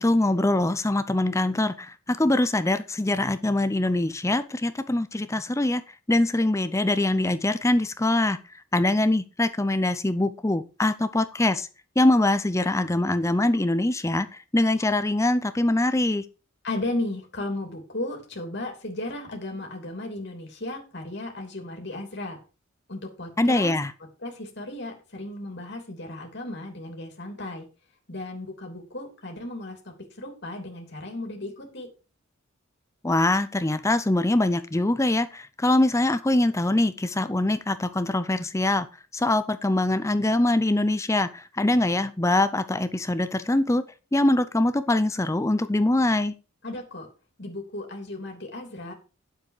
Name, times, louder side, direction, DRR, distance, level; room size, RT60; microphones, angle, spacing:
voice 1, 0.0-5.8 6.1-8.4 8.7-11.7 12.0-16.2 23.4-23.9 33.0-38.9 39.1-43.8 44.1-46.3, left 1 dB, 15° left, 0.5 m, -23 dB
voice 2, 16.6-22.4 22.9-23.7 24.2-27.6 28.1-29.8 30.2-31.9 46.6-47.1 47.4-48.9, left 2 dB, 50° left, 3.1 m, -35 dB
9.6 x 7.5 x 4.9 m
head